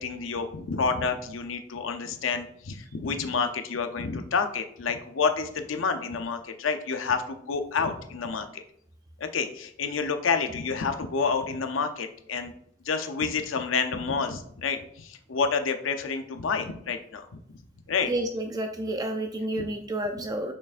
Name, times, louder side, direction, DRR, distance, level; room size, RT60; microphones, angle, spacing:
voice 1, 0.0-8.6 9.2-12.5 12.9-17.4 17.9-18.1 19.6-19.7, left 5 dB, 80° left, 7 dB, 0.6 m, -29 dB
voice 2, 18.0-20.5, right 1 dB, 20° right, 5 dB, 0.4 m, -30 dB
6.4 x 6.0 x 2.5 m, 0.68 s
head